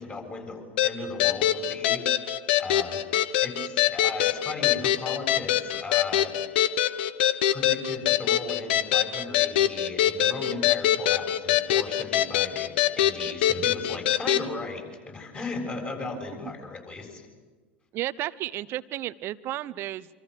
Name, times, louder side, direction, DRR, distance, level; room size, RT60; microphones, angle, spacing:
voice 1, 0.0-2.3 2.6-3.0 3.4-6.4 7.5-17.2, left 3 dB, 20° left, 3 dB, 7.3 m, -37 dB
sound 1, 0.8-14.5, left 12 dB, 60° left, 1.1 m, -24 dB
voice 2, 17.9-20.1, right 14 dB, 40° right, 18 dB, 0.9 m, -32 dB
27.0 x 26.5 x 6.6 m, 1.3 s
figure-of-eight pair, 80°, 6 cm